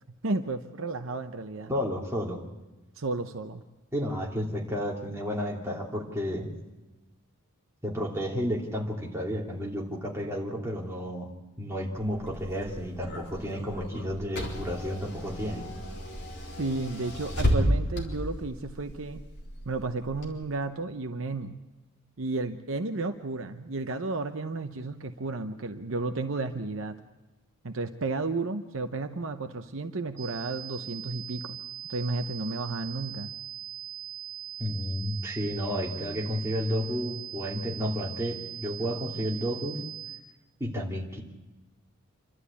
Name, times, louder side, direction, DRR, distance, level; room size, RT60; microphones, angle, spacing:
voice 1, 0.2-1.7 3.0-3.6 16.6-19.3 19.7-21.5 22.2-27.0 27.6-31.6 31.9-33.3, right 3 dB, 60° right, 7 dB, 0.8 m, -32 dB
voice 2, 1.7-2.4 3.9-6.5 7.8-11.3 11.6-15.6 34.6-39.8 40.6-41.2, equal, 10° right, -3 dB, 2.8 m, -32 dB
Car / Engine, 12.0-20.3, equal, 50° left, 3.9 m, -33 dB
sound 1, 30.2-40.2, right 11 dB, 35° right, 4.6 m, -41 dB
27.5 x 12.5 x 8.4 m, 1.1 s
head